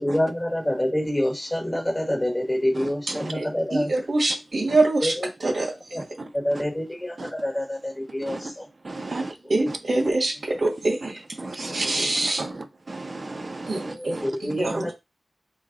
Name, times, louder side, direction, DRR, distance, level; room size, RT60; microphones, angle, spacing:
voice 1, 0.0-3.9 5.0-5.1 5.9-6.0 6.3-8.4 14.0-14.9, left 1 dB, 15° left, 1.2 m, -26 dB
voice 2, 2.7-3.3 4.7-4.8 6.0-6.6 7.2-7.3 8.2-8.5 8.8-9.3 9.7-9.8 11.0-11.1 11.4-14.4 14.7-14.8, right 2 dB, 50° right, 0.7 m, -36 dB
voice 3, 3.7-5.1 5.4-5.7 9.1-11.2 11.5-12.5 13.7-14.9, right 2 dB, 80° right, 1.6 m, -25 dB
3.8 x 3.3 x 3.9 m
wide cardioid pair, 90°, 0 cm